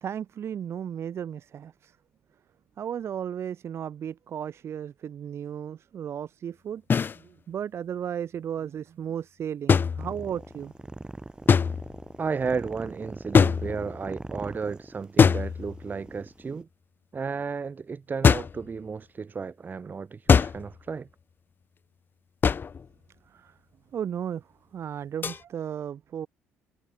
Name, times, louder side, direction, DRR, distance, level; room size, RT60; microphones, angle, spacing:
voice 1, 0.0-2.0 2.8-6.8 7.1-10.7 23.3-23.6 23.9-26.3, right 9 dB, 50° right, 0.9 m, -35 dB
sound 1, 6.9-7.2 9.7-10.5 11.5-12.1 13.3-14.1 15.2-16.0 18.2-18.7 20.3-20.8 22.4-22.9 25.2-25.4, left 6 dB, 40° left, 1.0 m, -22 dB
sound 2, 10.0-16.6, right 2 dB, 15° right, 2.5 m, -42 dB
voice 2, 12.2-16.7 17.1-21.1, right 5 dB, 35° right, 1.4 m, -33 dB
hypercardioid pair, 65°, 6 cm